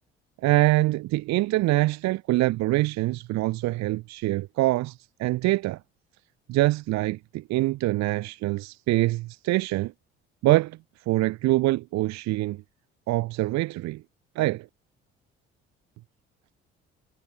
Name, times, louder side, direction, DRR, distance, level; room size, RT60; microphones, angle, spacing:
voice 1, 0.4-5.8 6.5-9.9 10.4-10.8 11.1-12.6 13.1-14.0 14.4-14.7, right 18 dB, 60° right, 0.7 m, -24 dB
hypercardioid pair, 55°, 31 cm